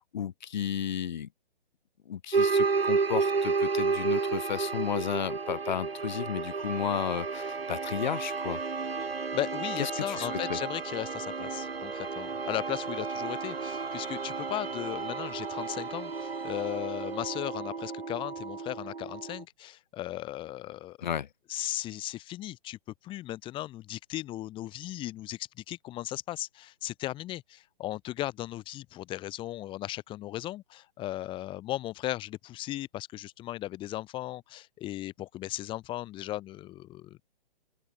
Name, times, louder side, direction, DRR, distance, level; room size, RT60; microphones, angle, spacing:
voice 1, 0.1-1.3 2.0-8.6 9.8-10.6 21.0-21.3, left 9 dB, 50° left, 1.4 m, -33 dB
sound 1, 2.3-19.4, right 4 dB, 85° right, 1.3 m, -32 dB
voice 2, 9.3-21.1 21.5-37.2, left 15 dB, 15° left, 3.0 m, -37 dB
open air
figure-of-eight pair, 140°, 29 cm